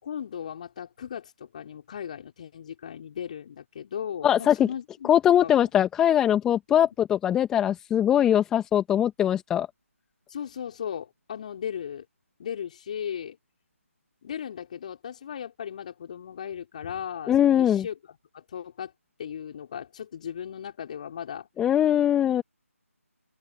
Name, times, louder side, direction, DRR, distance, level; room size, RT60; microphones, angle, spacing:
voice 1, 0.0-5.1 5.4-5.7 10.3-12.0 12.4-13.4 14.2-18.9 19.2-21.5 22.3-22.4, left 8 dB, 30° left, 4.9 m, -37 dB
voice 2, 4.2-4.7 5.0-9.7 17.3-17.8 21.6-22.4, left 10 dB, 5° left, 1.4 m, -21 dB
figure-of-eight pair, 155°, 8 cm